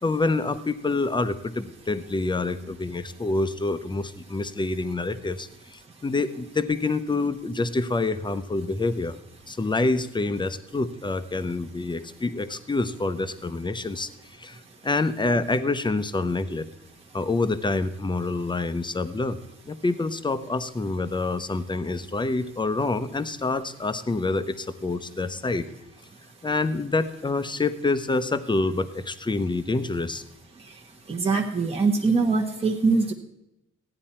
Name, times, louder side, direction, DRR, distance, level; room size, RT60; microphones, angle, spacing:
voice 1, 0.0-9.2 9.5-16.7 17.1-19.4 19.7-25.7 26.4-30.2, left 3 dB, 15° left, 11 dB, 0.7 m, -27 dB
voice 2, 31.1-33.1, right 4 dB, 20° right, 0 dB, 1.2 m, -22 dB
14.5 x 9.8 x 4.4 m, 0.87 s
cardioid pair, 90°, 30 cm